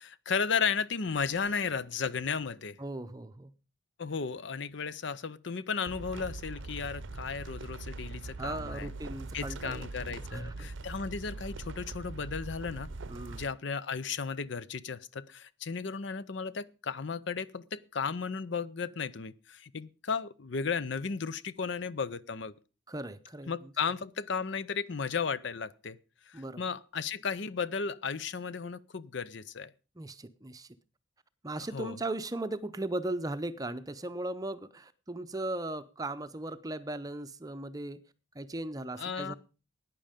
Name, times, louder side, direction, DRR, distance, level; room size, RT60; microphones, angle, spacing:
voice 1, 0.0-2.8 4.0-8.9 9.3-12.9 13.3-22.5 23.5-26.0 26.3-29.7 31.6-32.0 39.0-39.3, left 5 dB, 55° left, 0.6 m, -34 dB
voice 2, 2.8-3.5 8.4-10.7 13.1-13.5 22.9-23.7 26.3-26.6 30.0-30.7 31.4-38.0 38.3-39.3, right 2 dB, 15° right, 0.7 m, -38 dB
sound 1, 5.9-13.5, right 3 dB, 65° right, 0.7 m, -42 dB
14.5 x 9.9 x 5.1 m
head